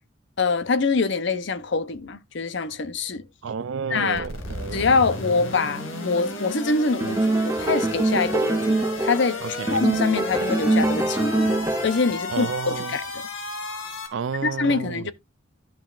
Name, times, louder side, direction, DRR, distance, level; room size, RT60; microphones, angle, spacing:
voice 1, 0.4-3.2 3.9-4.3 4.7-9.4 9.7-11.5 11.8-13.0 14.4-15.1, left 4 dB, 60° left, 0.7 m, -24 dB
voice 2, 3.4-4.9 9.4-9.9 12.3-13.0 14.1-15.1, right 6 dB, 70° right, 0.4 m, -31 dB
sound 1, 4.1-14.1, left 2 dB, 80° left, 2.2 m, -33 dB
sound 2, 7.0-9.3 9.7-12.1, right 2 dB, 15° right, 0.5 m, -23 dB
13.5 x 5.8 x 2.5 m
head